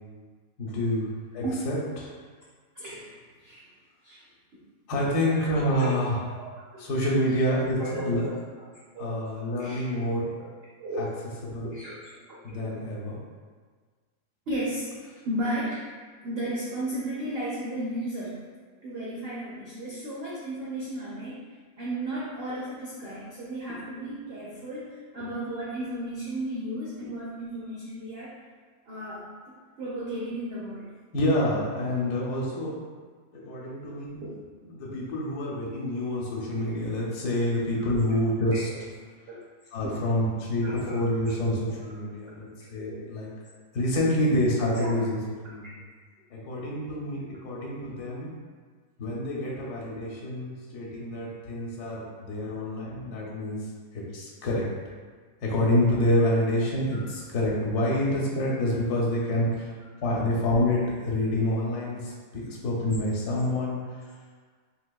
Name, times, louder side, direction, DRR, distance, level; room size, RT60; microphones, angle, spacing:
voice 1, 0.6-2.1 4.9-6.2 6.8-8.3 9.0-10.3 11.0-11.1 11.4-11.7 12.4-13.2 31.1-32.8 33.3-34.2 34.7-38.7 39.7-43.3 43.7-45.7 46.3-48.3 49.0-53.7 53.9-54.7 55.4-59.7 60.0-64.0, left 1 dB, 80° left, -4 dB, 1.1 m, -27 dB
voice 2, 2.7-3.2 3.4-3.6 4.0-4.2 5.7-5.9 7.8-8.3 8.9-9.1 9.6-10.0 10.8-11.3 11.6-12.0 12.5-12.7 14.5-14.9 15.2-15.9 16.2-18.4 18.8-21.4 21.8-28.3 28.9-29.3 29.8-30.9 34.2-34.4 38.5-38.6 39.3-39.4 39.8-40.0 40.6-41.0 41.4-41.7 42.7-43.1 44.6-45.0 60.2-60.3, right 1 dB, 90° right, -7 dB, 0.5 m, -34 dB
3.4 x 2.8 x 2.2 m, 1.6 s
omnidirectional pair, 1.7 m